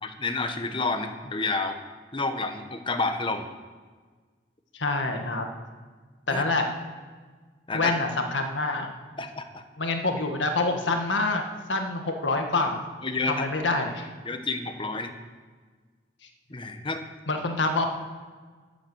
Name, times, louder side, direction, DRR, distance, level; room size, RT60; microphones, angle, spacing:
voice 1, 0.0-1.8 2.1-3.5 6.3-6.4 7.7-7.9 9.2-9.6 13.0-13.5 14.2-15.1 16.5-17.0, left 3 dB, 25° left, 7 dB, 1.1 m, -29 dB
voice 2, 4.7-5.5 6.3-6.7 7.7-8.9 9.8-11.4 11.7-12.8 13.3-14.1 17.3-17.8, left 3 dB, 85° left, 4 dB, 1.7 m, -26 dB
11.5 x 10.0 x 7.9 m, 1.5 s
head